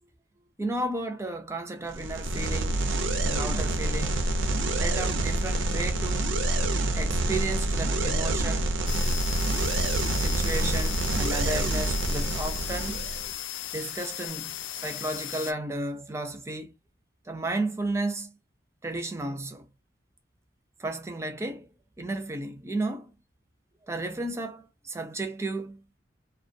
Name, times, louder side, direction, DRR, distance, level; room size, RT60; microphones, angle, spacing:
voice 1, 0.6-2.8 3.2-4.3 4.7-6.3 7.0-8.8 10.2-13.1 13.7-14.5 14.8-16.7 17.3-18.4 18.8-19.7 20.8-21.7 22.0-23.1 23.9-25.8, right 2 dB, 15° right, 0.4 m, -33 dB
sound 1, 1.9-13.3, right 2 dB, 80° right, 0.5 m, -27 dB
sound 2, 8.9-15.5, left 12 dB, 85° left, 0.3 m, -36 dB
2.2 x 2.2 x 2.6 m
head